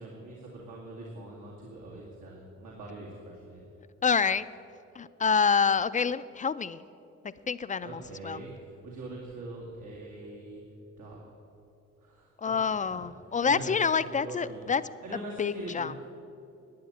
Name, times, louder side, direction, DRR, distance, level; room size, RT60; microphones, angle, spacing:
voice 1, 0.0-3.6 7.8-8.5 8.8-10.6 11.0-11.2 12.0-12.5 12.9-13.0 13.4-13.7 14.2-14.6 15.0-16.0, right 2 dB, 90° right, -4 dB, 2.2 m, -42 dB
voice 2, 4.0-4.5 4.9-6.8 7.5-8.4 12.4-14.8 15.4-15.9, left 6 dB, 25° left, 14 dB, 0.4 m, -27 dB
11.5 x 8.7 x 8.6 m, 2.7 s
cardioid pair, 90°, 30 cm